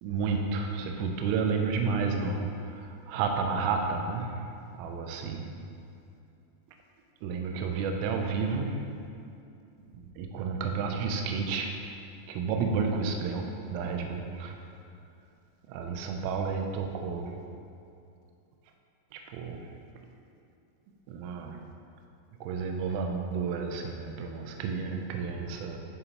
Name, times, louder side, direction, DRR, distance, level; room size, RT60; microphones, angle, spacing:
voice 1, 0.0-4.4 4.7-5.5 7.2-8.8 10.2-11.8 12.3-14.6 15.7-17.4 19.1-19.7 21.1-21.6 22.4-25.8, right 5 dB, 85° right, 3 dB, 3.1 m, -31 dB
11.0 x 6.6 x 3.0 m, 2.6 s
omnidirectional pair, 6.0 m